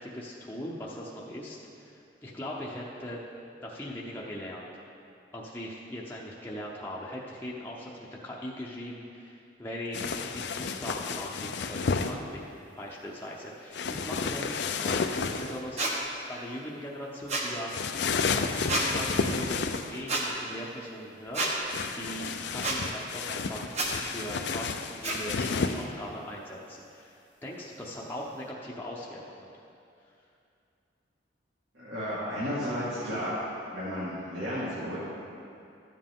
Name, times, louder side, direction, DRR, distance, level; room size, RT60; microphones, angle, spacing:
voice 1, 0.0-3.2 3.6-4.7 5.3-7.9 8.2-12.5 12.8-15.1 15.4-16.0 16.3-18.0 18.5-23.7 24.1-29.5, equal, 10° left, -5 dB, 0.7 m, -40 dB
sound 1, 9.9-12.1 13.7-15.6 17.7-20.0 21.7-25.8, left 5 dB, 60° left, 0.4 m, -31 dB
sound 2, 15.8-15.9 17.3-17.5 18.7-18.9 20.1-20.2 21.3-21.5 22.6-22.8 23.7-23.9 25.0-25.2, right 2 dB, 35° right, 1.0 m, -28 dB
voice 2, 31.7-33.4 33.7-35.0, equal, 65° right, -10 dB, 2.1 m, -33 dB
12.5 x 7.6 x 3.6 m, 2.6 s
head